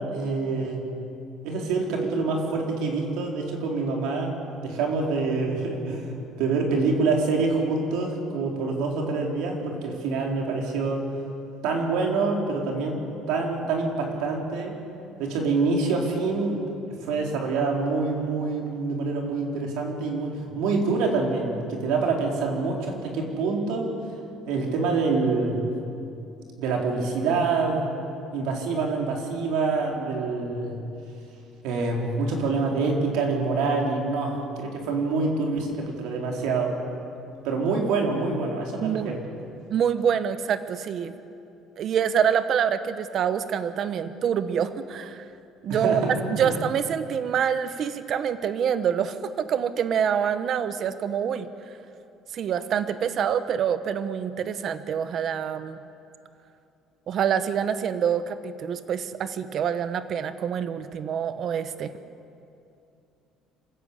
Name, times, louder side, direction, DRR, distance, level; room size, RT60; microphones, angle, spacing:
voice 1, 0.1-0.8 1.4-4.3 4.6-11.0 11.6-13.0 13.3-14.8 15.2-16.6 17.0-23.9 24.5-25.7 26.6-27.8 28.3-30.8 31.6-36.7 37.4-39.2 45.7-46.1 46.4-46.5, right 4 dB, 80° right, 1 dB, 4.2 m, -26 dB
voice 2, 38.8-39.2 39.7-41.1 41.8-45.3 45.6-46.0 46.3-51.5 52.3-55.8 57.1-61.9, right 8 dB, 40° right, 12 dB, 0.9 m, -26 dB
27.0 x 15.5 x 8.5 m, 2.7 s
cardioid pair, 160°, 0 cm